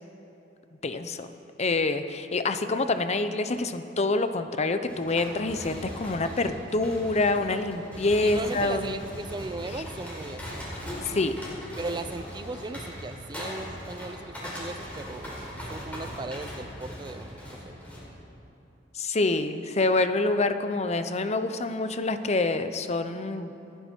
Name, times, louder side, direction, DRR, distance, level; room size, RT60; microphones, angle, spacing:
voice 1, 0.8-1.3 1.6-8.9 11.1-11.3 18.9-23.5, left 2 dB, 35° left, 9 dB, 0.7 m, -26 dB
sound 1, 4.9-18.0, equal, 10° left, 4.6 m, -39 dB
voice 2, 8.2-10.6 11.8-17.7, right 3 dB, 25° right, 10 dB, 0.4 m, -37 dB
29.0 x 10.5 x 4.5 m, 2.9 s
head